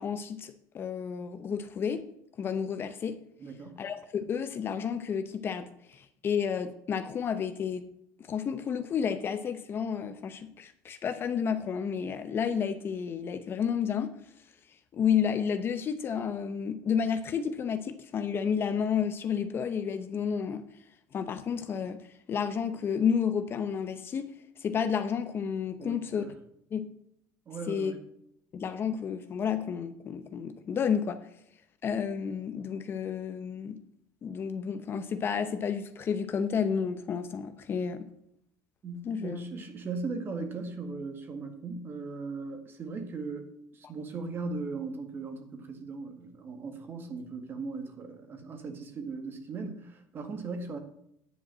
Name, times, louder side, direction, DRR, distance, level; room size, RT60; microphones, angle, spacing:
voice 1, 0.0-2.0 2.4-3.2 3.8-7.8 8.3-14.1 14.9-20.7 21.1-22.0 22.3-24.3 24.6-26.2 26.7-26.9 27.7-27.9 28.5-31.2 31.8-33.8 34.2-38.1 39.0-39.4, left 7 dB, 35° left, 0.8 m, -31 dB
voice 2, 3.4-3.8 25.8-26.3 27.5-28.0 38.8-50.8, right 4 dB, 30° right, 1.7 m, -38 dB
10.0 x 5.3 x 7.5 m
cardioid pair, 145°, 7 cm